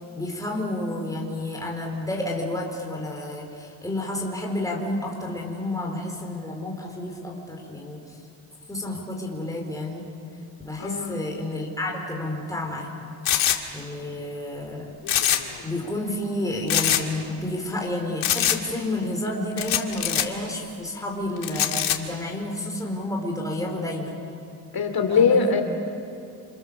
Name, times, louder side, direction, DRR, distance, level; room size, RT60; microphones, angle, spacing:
voice 1, 0.0-8.0 8.7-10.0 10.6-13.0 13.7-14.9 15.6-24.2 25.1-25.5, left 1 dB, 5° left, 0 dB, 4.3 m, -30 dB
voice 2, 10.8-11.2 24.7-25.6, left 5 dB, 50° left, 5 dB, 2.9 m, -21 dB
sound 1, 13.3-13.6 15.0-15.6 15.8-15.9 16.7-17.0 18.2-18.6 19.6-20.3 21.4-22.0, left 11 dB, 80° left, 2.0 m, -23 dB
28.5 x 28.0 x 7.0 m, 2.6 s
cardioid pair, 145°, 47 cm